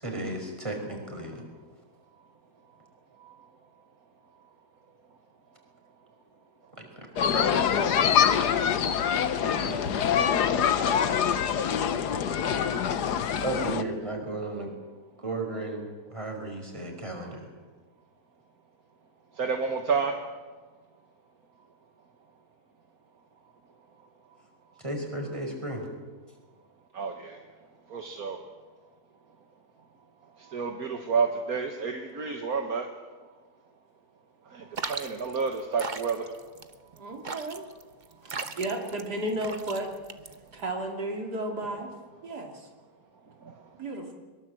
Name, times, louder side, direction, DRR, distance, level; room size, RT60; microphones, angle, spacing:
voice 1, 0.0-1.4 6.8-6.9 7.3-7.9 9.4-9.8 13.4-14.7 15.2-17.5 24.8-25.9, right 2 dB, 20° right, 2 dB, 5.1 m, -34 dB
sound 1, 7.2-13.8, left 8 dB, 90° left, 1.6 m, -25 dB
voice 2, 19.4-20.1 26.9-27.4 27.9-28.4 30.5-32.9 34.5-36.3 43.4-43.5, right 5 dB, 65° right, 4 dB, 2.0 m, -29 dB
sound 2, 34.7-40.7, right 4 dB, 35° right, 1.0 m, -38 dB
voice 3, 36.9-37.6 38.2-39.9 40.5-41.9 42.2-42.7 43.7-44.1, right 1 dB, 85° right, 1 dB, 3.5 m, -33 dB
23.0 x 22.0 x 7.8 m, 1.3 s
omnidirectional pair, 1.7 m